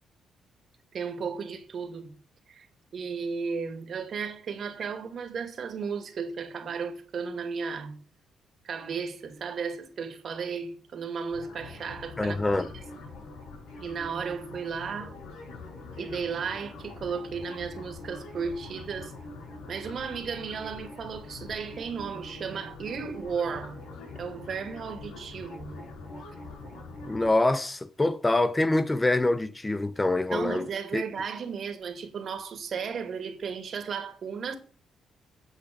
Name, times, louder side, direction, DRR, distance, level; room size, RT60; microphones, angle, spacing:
voice 1, 0.9-2.1 2.5-2.7 2.9-8.0 8.6-12.4 12.7-12.8 13.8-15.2 16.0-19.1 19.7-23.8 24.2-25.7 30.3-34.5, right 6 dB, 55° right, 2.2 m, -34 dB
sound 1, 11.3-27.3, left 3 dB, 85° left, 6.0 m, -44 dB
voice 2, 12.2-12.7 27.0-30.7 30.9-31.0, left 2 dB, 15° left, 0.6 m, -25 dB
9.3 x 7.8 x 5.3 m
cardioid pair, 90°, 0 cm